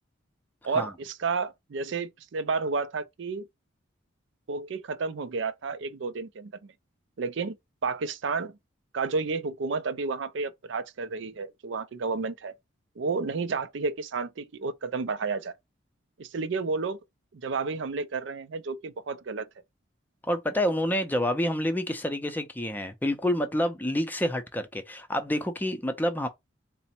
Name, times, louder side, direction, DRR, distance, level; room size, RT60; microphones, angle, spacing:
voice 1, 0.6-3.5 4.5-6.7 7.2-7.5 7.8-8.5 8.9-12.5 13.0-15.5 16.2-17.0 17.3-19.5, right 4 dB, 65° right, 0.4 m, -31 dB
voice 2, 20.2-26.3, left 1 dB, 10° left, 0.5 m, -28 dB
4.0 x 2.1 x 4.3 m
head